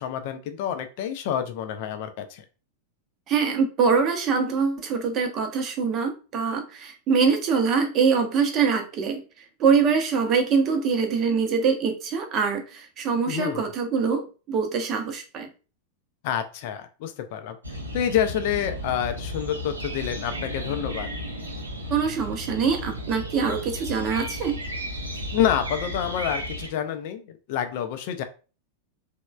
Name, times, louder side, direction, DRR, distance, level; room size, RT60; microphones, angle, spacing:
voice 1, 0.0-2.4 13.3-13.6 16.2-17.6 17.9-21.1 25.3-28.2, left 9 dB, 50° left, 9 dB, 0.3 m, -28 dB
voice 2, 3.3-15.5 21.9-24.6, right 5 dB, 35° right, 5 dB, 0.5 m, -24 dB
sound 1, 17.6-26.7, equal, 80° right, 0.5 m, -34 dB
3.0 x 2.1 x 2.2 m, 0.35 s
figure-of-eight pair, 90°, 0 cm